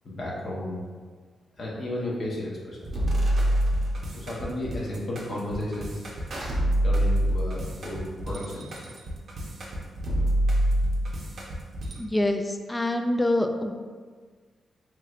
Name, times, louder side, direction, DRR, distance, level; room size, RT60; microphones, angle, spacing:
voice 1, 0.0-0.8 1.6-2.9 4.1-6.0 6.8-8.9, left 1 dB, 55° left, -5 dB, 0.8 m, -33 dB
sound 1, 2.9-12.0, right 1 dB, 60° right, 0.6 m, -26 dB
voice 2, 12.0-13.7, left 1 dB, 15° left, 5 dB, 0.3 m, -25 dB
3.0 x 3.0 x 2.4 m, 1.5 s
cardioid pair, 80°, 0 cm